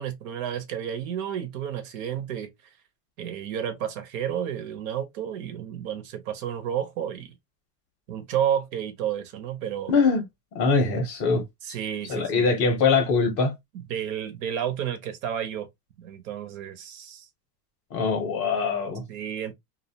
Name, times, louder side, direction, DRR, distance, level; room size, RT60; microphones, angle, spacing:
voice 1, 0.0-2.5 3.2-7.3 8.1-9.9 11.6-12.5 13.9-15.7 16.0-17.3 19.1-19.5, right 9 dB, 60° right, 0.6 m, -31 dB
voice 2, 9.9-10.2 10.5-11.4 12.1-13.5 17.9-19.0, left 4 dB, 30° left, 0.6 m, -22 dB
2.5 x 2.1 x 2.6 m
supercardioid pair, 165°, 49 cm